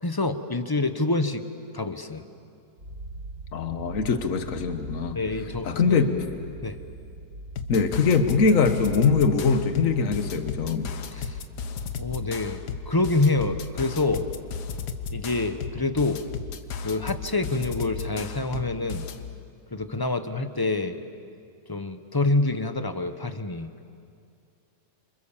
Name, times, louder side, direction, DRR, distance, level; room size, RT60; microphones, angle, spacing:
voice 1, 0.0-1.4 1.7-2.2 5.1-6.0 6.6-6.8 11.1-11.4 12.0-14.3 15.1-16.2 16.8-19.0 19.7-21.0 21.7-23.7, left 2 dB, 20° left, 10 dB, 0.8 m, -27 dB
sound 1, 2.8-17.3, right 2 dB, 80° right, 4.6 m, -45 dB
voice 2, 3.5-5.2 5.6-6.2 7.7-10.9, left 5 dB, 55° left, 8 dB, 1.7 m, -22 dB
sound 2, 7.6-19.3, left 5 dB, 85° left, 1.7 m, -35 dB
29.0 x 27.0 x 7.4 m, 2.4 s
omnidirectional pair, 1.7 m